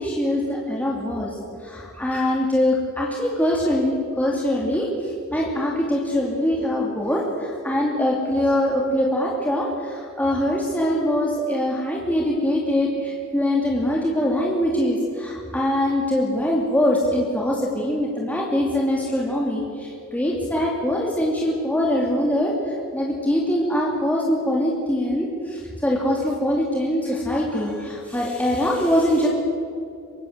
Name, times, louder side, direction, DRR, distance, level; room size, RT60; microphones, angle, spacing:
voice 1, 0.0-1.4 1.6-29.3, left 1 dB, 10° left, -3 dB, 2.8 m, -23 dB
24.5 x 21.5 x 8.0 m, 2.6 s
head